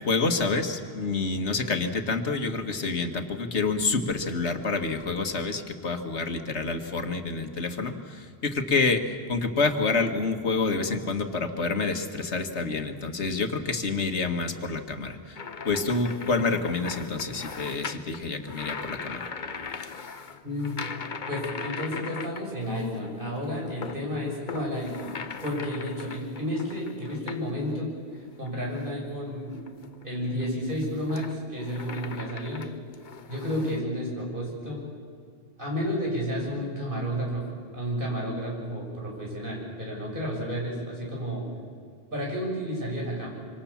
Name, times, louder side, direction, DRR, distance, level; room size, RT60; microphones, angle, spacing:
voice 1, 0.1-15.4 15.7-19.3, left 3 dB, 85° left, 6 dB, 1.9 m, -28 dB
sound 1, 15.4-23.0 23.3-27.8 28.3-29.0 29.5-33.8, left 5 dB, 45° left, 1.1 m, -39 dB
voice 2, 20.4-20.9 21.3-25.1 25.4-27.9 28.4-29.6 30.0-32.6 33.3-34.8 35.6-37.4 37.7-41.5 42.1-43.3, equal, 50° right, -2 dB, 7.4 m, -31 dB
26.5 x 25.5 x 7.2 m, 2.1 s
omnidirectional pair, 1.1 m